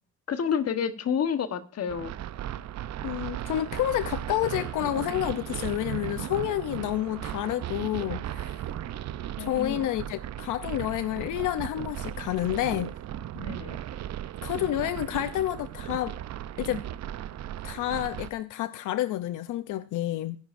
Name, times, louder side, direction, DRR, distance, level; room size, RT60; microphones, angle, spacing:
voice 1, 0.3-2.1 9.4-9.8 13.3-13.8, left 7 dB, 55° left, 1.2 m, -29 dB
sound 1, 1.9-18.3, right 12 dB, 60° right, 0.7 m, -36 dB
voice 2, 3.0-8.7 9.4-13.0 14.4-16.1 16.6-16.8 17.6-20.4, left 13 dB, 80° left, 0.6 m, -29 dB
19.0 x 10.5 x 2.6 m
cardioid pair, 90°, 30 cm